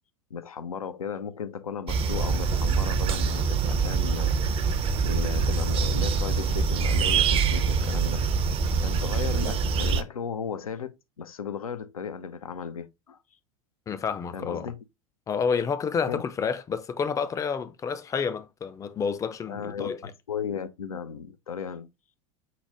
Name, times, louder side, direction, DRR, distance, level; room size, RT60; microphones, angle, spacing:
voice 1, 0.3-4.4 4.9-8.3 8.8-13.2 14.3-14.8 16.1-16.2 19.5-21.9, left 6 dB, 85° left, 0.5 m, -35 dB
sound 1, 1.9-10.0, right 5 dB, 30° right, 0.5 m, -25 dB
voice 2, 13.9-14.7 15.3-20.0, left 6 dB, 20° left, 0.4 m, -29 dB
5.7 x 2.1 x 3.4 m
figure-of-eight pair, 80°, 18 cm